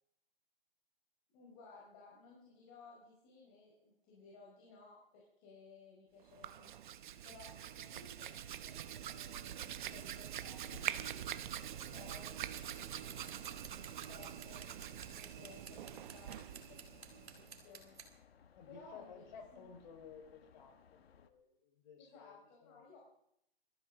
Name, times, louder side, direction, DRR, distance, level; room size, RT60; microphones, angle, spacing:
voice 1, 1.3-6.7 7.2-11.4 11.8-13.4 14.1-18.0 18.6-19.8 22.0-23.0, left 3 dB, 30° left, -3 dB, 4.8 m, -59 dB
Hands, 6.2-17.6, right 10 dB, 50° right, 0.9 m, -45 dB
sound 1, 10.7-21.3, left 7 dB, 70° left, 1.4 m, -63 dB
Scissors, 12.6-18.1, right 5 dB, 80° right, 4.5 m, -54 dB
voice 2, 18.5-22.9, left 6 dB, 45° left, 3 dB, 4.8 m, -56 dB
23.5 x 14.5 x 3.8 m, 0.76 s
hypercardioid pair, 150°, 31 cm